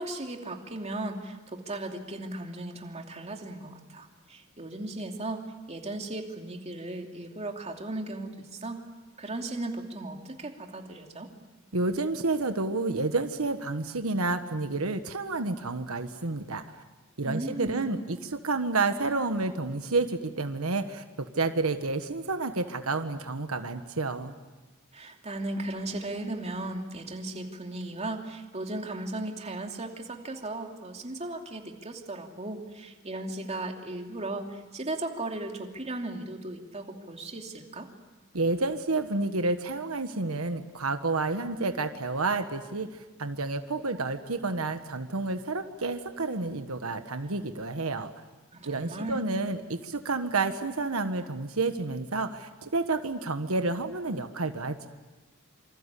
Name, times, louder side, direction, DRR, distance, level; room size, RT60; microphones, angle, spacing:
voice 1, 0.0-5.4 5.7-8.8 9.2-11.3 17.2-17.9 24.9-37.9 48.5-49.2, right 2 dB, 30° right, 3 dB, 2.8 m, -36 dB
voice 2, 11.7-16.6 17.2-24.3 38.3-48.1 48.6-54.9, right 3 dB, 90° right, 7 dB, 1.5 m, -30 dB
27.5 x 25.5 x 8.4 m, 1.2 s
head